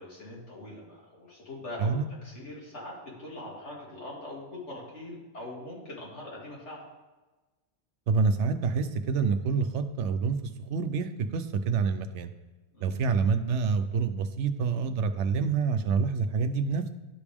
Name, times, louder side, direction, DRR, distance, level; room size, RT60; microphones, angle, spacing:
voice 1, 0.0-6.9 12.7-12.9, left 1 dB, 90° left, -5 dB, 2.7 m, -42 dB
voice 2, 8.1-12.3 12.8-16.9, right 5 dB, 85° right, 8 dB, 0.9 m, -27 dB
11.5 x 5.0 x 3.5 m, 1.2 s
omnidirectional pair, 1.2 m